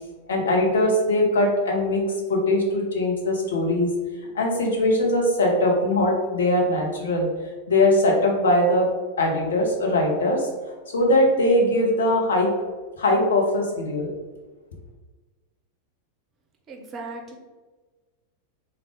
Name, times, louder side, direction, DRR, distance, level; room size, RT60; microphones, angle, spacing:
voice 1, 0.3-3.9 4.3-7.3 7.7-8.9 9.2-10.5 10.9-12.5 13.0-14.1, left 1 dB, 65° left, 0 dB, 0.8 m, -21 dB
voice 2, 16.7-17.4, right 3 dB, 30° right, 2 dB, 0.6 m, -37 dB
3.6 x 2.3 x 3.5 m, 1.3 s
figure-of-eight pair, 90°, 0 cm